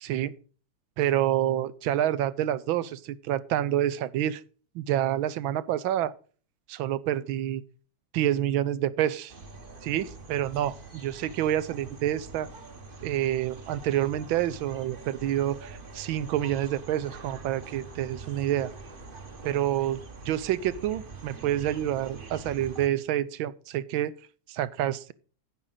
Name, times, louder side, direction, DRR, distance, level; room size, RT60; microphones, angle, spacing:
voice 1, 0.0-0.3 1.0-4.4 4.7-6.1 6.7-7.6 8.1-9.3 9.8-12.5 13.0-18.7 19.4-20.0 20.3-24.1 24.5-25.1, right 12 dB, 75° right, 1.3 m, -28 dB
sound 1, 9.3-22.9, right 3 dB, 30° right, 1.1 m, -44 dB
9.9 x 8.8 x 4.0 m
omnidirectional pair, 2.4 m